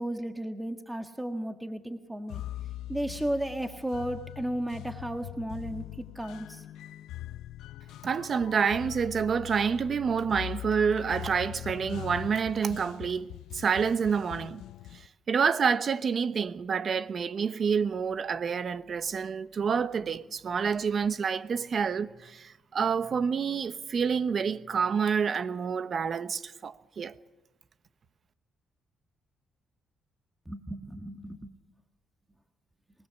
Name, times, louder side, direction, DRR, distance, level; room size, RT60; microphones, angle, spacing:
voice 1, 0.0-2.4 2.9-5.8 6.1-6.6 30.5-31.5, right 1 dB, 10° right, 1.5 m, -34 dB
sound 1, 2.3-15.1, left 14 dB, 85° left, 0.6 m, -42 dB
voice 2, 8.0-14.6 14.9-27.2, right 6 dB, 50° right, 1.0 m, -28 dB
25.0 x 19.5 x 7.0 m
cardioid pair, 90°, 0 cm